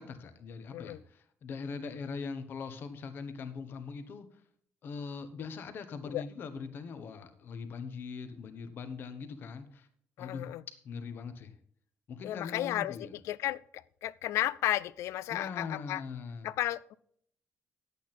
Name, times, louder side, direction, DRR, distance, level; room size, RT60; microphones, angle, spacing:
voice 1, 0.0-4.3 4.8-9.9 10.2-10.5 10.8-11.5 12.1-13.1 15.3-16.5, left 5 dB, 45° left, 9 dB, 1.0 m, -41 dB
voice 2, 10.2-10.6 12.2-16.0 16.4-16.9, left 14 dB, 70° left, 20 dB, 0.3 m, -33 dB
10.5 x 8.4 x 4.1 m, 0.64 s
cardioid pair, 170°, 5 cm